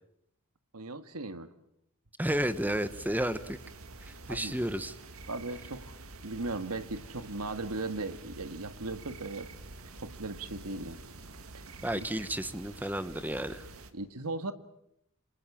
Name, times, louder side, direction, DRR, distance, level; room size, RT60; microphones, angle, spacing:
voice 1, 0.7-1.5 4.3-4.6 5.3-6.0 6.2-9.5 10.0-11.0 11.5-11.6 11.9-12.1 13.9-14.5, right 2 dB, 80° right, 11 dB, 1.8 m, -37 dB
voice 2, 2.2-3.6 4.0-4.9 11.8-13.6, right 1 dB, 10° right, 13 dB, 1.2 m, -32 dB
sound 1, 2.2-13.9, right 3 dB, 65° right, 2.1 m, -48 dB
27.0 x 26.5 x 7.3 m, 0.76 s
head